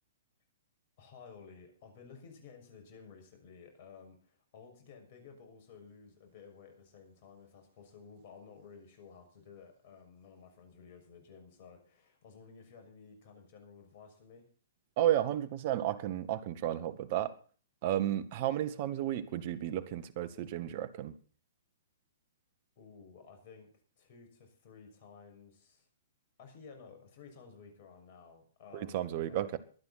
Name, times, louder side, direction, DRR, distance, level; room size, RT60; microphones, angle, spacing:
voice 1, 1.0-14.4 22.8-25.9 26.4-29.6, left 5 dB, 50° left, 6.4 m, -54 dB
voice 2, 15.0-17.3 17.8-21.1 28.7-29.6, right 12 dB, 45° right, 1.8 m, -32 dB
23.5 x 9.6 x 4.3 m
hypercardioid pair, 120°, 0 cm